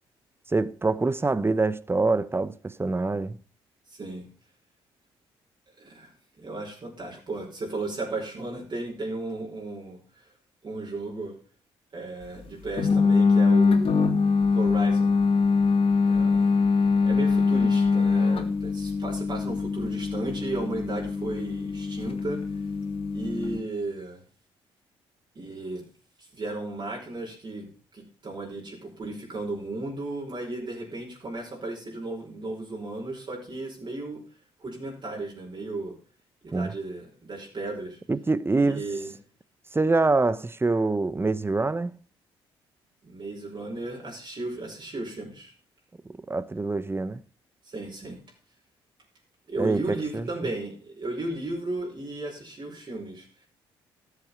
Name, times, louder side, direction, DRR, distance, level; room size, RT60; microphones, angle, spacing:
voice 1, 0.5-3.4 36.5-36.7 38.1-38.8 39.7-41.9 46.1-47.2 49.6-50.3, right 3 dB, 20° right, 0.9 m, -25 dB
voice 2, 3.9-4.3 5.8-10.3 10.6-11.3 11.9-14.1 14.5-15.1 16.1-16.7 17.0-22.4 23.1-24.2 25.4-25.8 26.2-27.7 27.9-34.2 34.6-35.9 36.4-38.0 38.6-39.1 43.0-45.5 47.7-48.2 49.5-53.3, right 2 dB, 40° right, 5.5 m, -35 dB
sound 1, 12.8-23.6, left 4 dB, 50° left, 2.2 m, -23 dB
13.0 x 8.3 x 5.7 m
hypercardioid pair, 50°, 12 cm